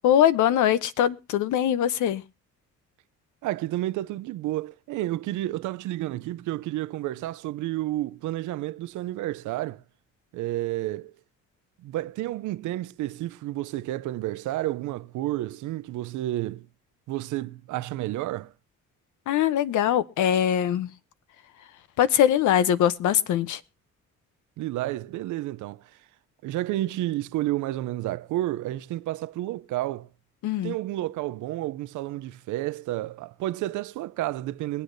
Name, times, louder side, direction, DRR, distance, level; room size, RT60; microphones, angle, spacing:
voice 1, 0.0-2.2 19.3-20.9 22.0-23.6 30.4-30.7, left 10 dB, 75° left, 0.7 m, -22 dB
voice 2, 3.4-9.8 10.3-11.1 11.8-16.7 17.1-18.5 24.6-25.9 26.4-30.1 30.6-34.8, right 15 dB, 80° right, 0.5 m, -31 dB
22.5 x 8.1 x 2.6 m
cardioid pair, 90°, 30 cm